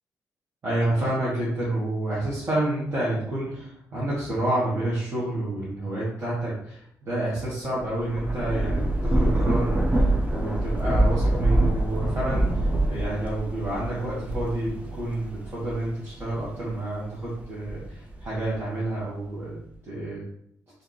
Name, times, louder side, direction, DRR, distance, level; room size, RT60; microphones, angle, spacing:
voice 1, 0.6-19.6 19.8-20.2, right 1 dB, 35° right, -9 dB, 1.1 m, -29 dB
Thunder / Rain, 7.8-16.7 17.2-18.6, right 1 dB, 20° right, 0.6 m, -25 dB
3.1 x 2.5 x 3.9 m, 0.71 s
wide cardioid pair, 160°, 7 cm